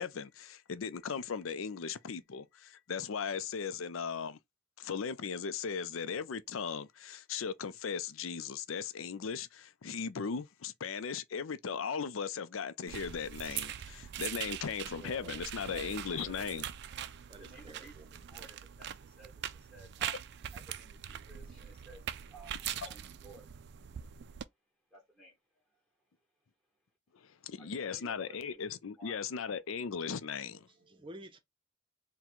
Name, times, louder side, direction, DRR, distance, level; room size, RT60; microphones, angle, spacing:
voice 1, 0.0-4.4 4.8-16.7 22.8-22.9 27.4-30.7, left 6 dB, 80° left, 0.5 m, -38 dB
sound 1, 12.9-24.4, right 10 dB, 55° right, 0.4 m, -42 dB
voice 2, 15.0-15.4 15.7-15.9 16.2-16.6 17.3-18.1 30.9-31.4, right 1 dB, 25° right, 0.7 m, -51 dB
voice 3, 17.0-23.5 24.9-25.8 27.6-28.6 29.0-29.2, right 2 dB, ahead, 1.2 m, -57 dB
3.9 x 2.2 x 4.4 m
head